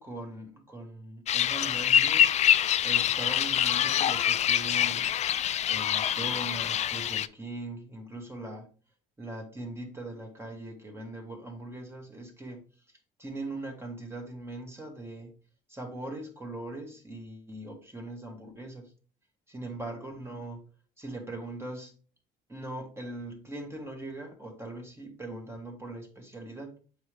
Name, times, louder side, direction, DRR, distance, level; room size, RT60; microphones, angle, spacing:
voice 1, 0.0-2.3 2.8-5.1 5.7-8.7 9.2-12.6 13.2-15.3 15.7-18.9 19.5-20.7 21.0-21.9 22.5-26.8, right 2 dB, 15° right, 1.5 m, -40 dB
sound 1, 1.3-7.3, left 10 dB, 40° left, 0.4 m, -25 dB
7.4 x 4.9 x 3.3 m
cardioid pair, 110°, 17 cm